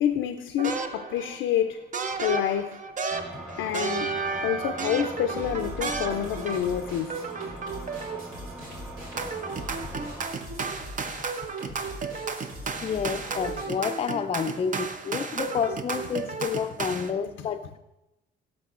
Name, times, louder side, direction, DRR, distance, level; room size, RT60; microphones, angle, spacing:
voice 1, 0.0-1.8 2.2-2.8 3.6-7.2 17.4-17.5, left 10 dB, 85° left, 0.5 m, -28 dB
sound 1, 0.6-1.4 1.9-6.8 7.1-8.4 9.2-17.1, right 4 dB, 40° right, 0.6 m, -33 dB
sound 2, 3.1-10.3, right 1 dB, 15° right, 2.3 m, -42 dB
sound 3, 5.3-13.7, equal, 90° right, 2.3 m, -42 dB
voice 2, 12.8-17.8, left 6 dB, 30° left, 0.4 m, -29 dB
12.0 x 6.1 x 2.4 m
cardioid pair, 90°, 20 cm